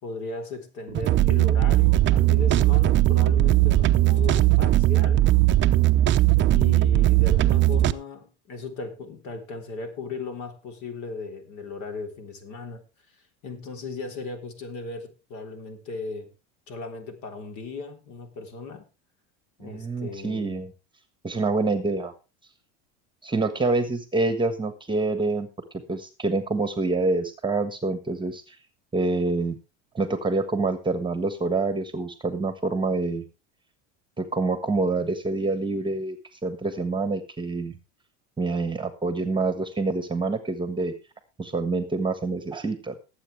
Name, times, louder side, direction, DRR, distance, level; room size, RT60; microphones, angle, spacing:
voice 1, 0.0-5.3 6.5-12.8 13.4-16.3 16.7-18.9 19.6-20.6, left 4 dB, 55° left, 3.6 m, -37 dB
sound 1, 0.9-7.9, right 14 dB, 35° right, 0.7 m, -19 dB
voice 2, 19.6-20.7 21.2-22.1 23.2-25.5 25.9-28.6 28.9-29.6 29.9-33.3 34.2-36.2 36.4-37.8 38.4-40.9 41.4-42.9, right 3 dB, 15° right, 1.4 m, -26 dB
19.0 x 8.2 x 3.4 m
supercardioid pair, 125°, 35 cm